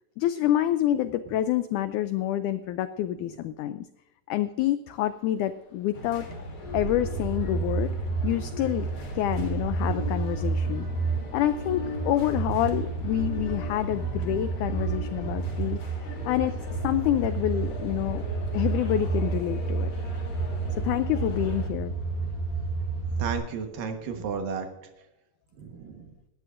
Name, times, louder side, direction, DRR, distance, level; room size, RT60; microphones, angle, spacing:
voice 1, 0.2-3.9 4.3-6.3 6.7-7.9 8.2-8.9 9.1-10.9 11.3-15.8 16.2-18.2 18.5-19.9 20.8-21.9, left 12 dB, 85° left, 12 dB, 1.7 m, -27 dB
Train, 4.9-23.4, left 4 dB, 50° left, 3.2 m, -51 dB
sound 1, 5.9-21.7, left 2 dB, 35° left, 3.6 m, -39 dB
sound 2, 6.6-23.3, right 4 dB, 15° right, 2.8 m, -31 dB
voice 2, 23.2-24.7 25.6-26.0, right 6 dB, 70° right, 5 dB, 3.0 m, -33 dB
18.5 x 12.5 x 2.5 m, 0.92 s
omnidirectional pair, 4.1 m